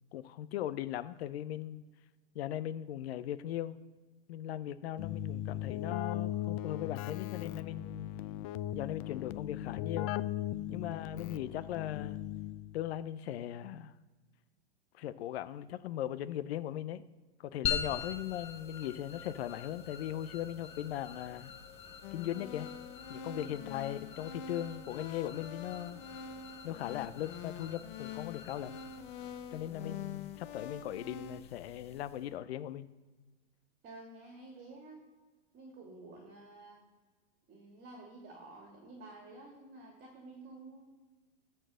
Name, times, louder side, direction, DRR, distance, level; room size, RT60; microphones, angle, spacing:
voice 1, 0.1-1.8 2.3-3.7 4.3-8.1 8.7-10.1 10.7-12.2 12.7-13.9 14.9-17.0 17.4-21.5 22.1-22.7 23.1-26.0 26.6-28.8 29.5-32.9, left 12 dB, 70° left, 12 dB, 0.6 m, -39 dB
Keyboard (musical), 5.0-12.9, left 12 dB, 35° left, 0.4 m, -38 dB
sound 1, 17.6-32.3, left 7 dB, 20° left, 1.0 m, -44 dB
sound 2, 22.0-31.4, left 7 dB, 50° left, 1.0 m, -45 dB
voice 2, 33.8-35.0 35.5-36.8 37.5-40.9, right 2 dB, 30° right, 1 dB, 2.4 m, -51 dB
13.5 x 4.5 x 6.2 m, 1.3 s
hypercardioid pair, 130°, 33 cm